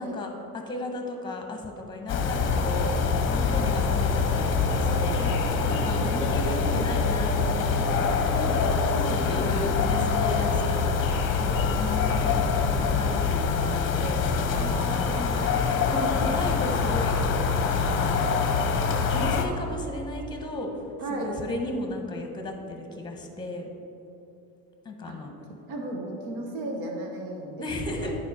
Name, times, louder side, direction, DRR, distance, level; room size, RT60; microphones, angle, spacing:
voice 1, 0.0-5.2 5.6-11.0 11.4-15.5 15.9-17.2 17.6-18.2 19.1-20.7 21.1-23.7 24.8-25.3 27.6-28.1, left 2 dB, 10° left, 3 dB, 1.0 m, -35 dB
sound 1, 2.1-19.5, left 5 dB, 30° left, 0.7 m, -25 dB
voice 2, 4.7-5.5 5.8-6.1 8.9-10.0 14.5-17.0 21.0-21.3 25.0-25.2 25.7-28.2, right 2 dB, 85° right, 1 dB, 1.3 m, -36 dB
10.0 x 4.8 x 4.9 m, 2.9 s
cardioid pair, 135°, 39 cm